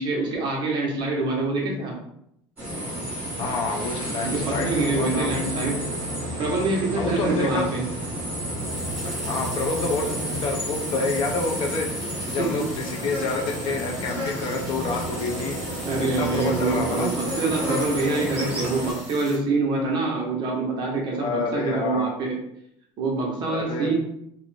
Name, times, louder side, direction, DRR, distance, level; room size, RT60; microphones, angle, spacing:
voice 1, 0.0-2.0 4.2-5.8 6.4-7.8 12.4-12.6 15.8-22.4 23.0-23.9, right 3 dB, 45° right, -1 dB, 0.8 m, -25 dB
sound 1, 2.6-18.9, right 1 dB, 15° right, 1.2 m, -31 dB
voice 2, 3.4-5.4 7.0-7.7 9.0-15.6 16.0-17.1 21.1-22.1 23.5-23.9, left 3 dB, 45° left, 2 dB, 0.5 m, -28 dB
sound 2, 4.1-10.4, equal, 75° right, 1.0 m, -36 dB
sound 3, 8.5-19.4, equal, 5° left, 0.9 m, -43 dB
2.5 x 2.0 x 3.1 m, 0.74 s
cardioid pair, 145°, 11 cm